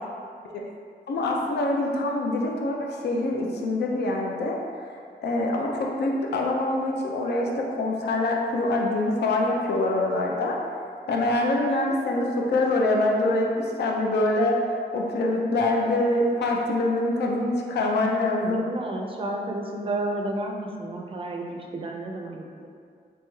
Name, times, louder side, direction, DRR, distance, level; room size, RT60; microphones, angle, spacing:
voice 1, 1.1-10.6 11.1-18.6, left 2 dB, 80° left, 0 dB, 0.5 m, -25 dB
voice 2, 18.4-22.7, right 2 dB, 35° right, 1 dB, 0.4 m, -32 dB
3.4 x 3.0 x 3.1 m, 2.2 s
wide cardioid pair, 135°, 17 cm